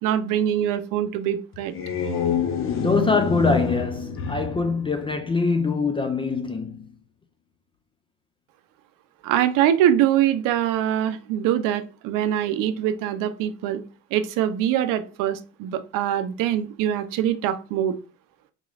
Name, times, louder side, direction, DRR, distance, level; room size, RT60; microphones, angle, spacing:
voice 1, 0.0-1.7 9.2-13.8 14.1-18.0, right 11 dB, 65° right, 0.6 m, -23 dB
sound 1, 1.5-5.8, left 6 dB, 35° left, 0.7 m, -28 dB
voice 2, 2.8-6.8, left 4 dB, 15° left, 0.3 m, -23 dB
3.8 x 3.1 x 2.3 m
supercardioid pair, 95°, 35 cm